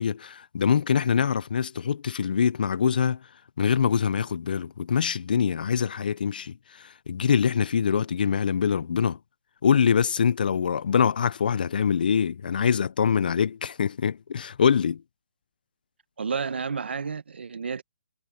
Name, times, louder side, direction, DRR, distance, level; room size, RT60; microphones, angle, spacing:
voice 1, 0.0-3.2 3.6-6.5 7.1-9.2 9.6-15.0, left 7 dB, 50° left, 0.4 m, -24 dB
voice 2, 16.2-17.8, right 5 dB, 70° right, 1.4 m, -31 dB
hypercardioid pair, 170°, 6 cm